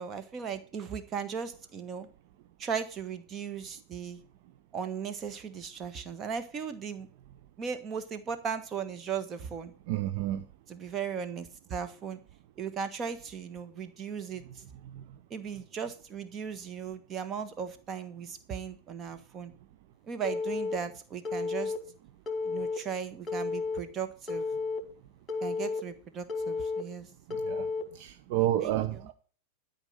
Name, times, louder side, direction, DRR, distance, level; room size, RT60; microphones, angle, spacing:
voice 1, 0.0-2.1 2.6-4.2 4.7-7.1 7.6-9.7 10.7-12.2 12.6-14.6 15.3-19.5 20.1-21.7 22.4-24.5 25.4-27.1 28.6-29.1, right 7 dB, 25° right, 1.4 m, -37 dB
voice 2, 9.9-10.4 27.3-27.7 27.9-29.1, right 13 dB, 50° right, 0.7 m, -30 dB
Telephone, 20.2-20.8 21.2-21.8 22.3-22.8 23.3-23.8 24.3-24.8 25.3-25.8 26.3-26.8 27.3-27.8, left 4 dB, 20° left, 2.1 m, -32 dB
12.5 x 5.4 x 7.9 m
figure-of-eight pair, 90°, 0 cm